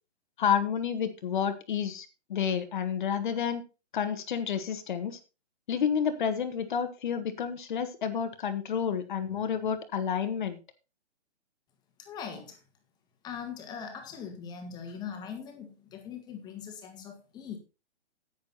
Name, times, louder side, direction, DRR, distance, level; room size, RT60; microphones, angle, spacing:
voice 1, 0.4-3.6 3.9-5.2 5.7-10.6, left 7 dB, 45° left, 9 dB, 1.5 m, -30 dB
voice 2, 12.0-12.6 13.2-17.6, left 7 dB, 10° left, 4 dB, 1.8 m, -41 dB
10.0 x 9.2 x 4.1 m, 0.30 s
hypercardioid pair, 155°, 34 cm